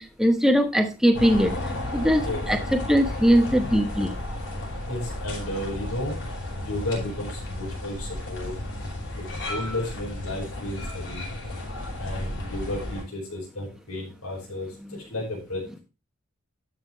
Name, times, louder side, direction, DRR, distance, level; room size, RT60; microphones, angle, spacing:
voice 1, 0.0-1.5 1.9-4.2 14.9-15.0, equal, ahead, 6 dB, 1.0 m, -21 dB
sound 1, 1.1-13.0, left 1 dB, 60° left, 5.3 m, -33 dB
voice 2, 4.8-6.2 6.6-8.5 9.1-11.3 12.0-15.8, left 1 dB, 80° left, -3 dB, 4.6 m, -33 dB
12.0 x 6.2 x 3.2 m, 0.31 s
head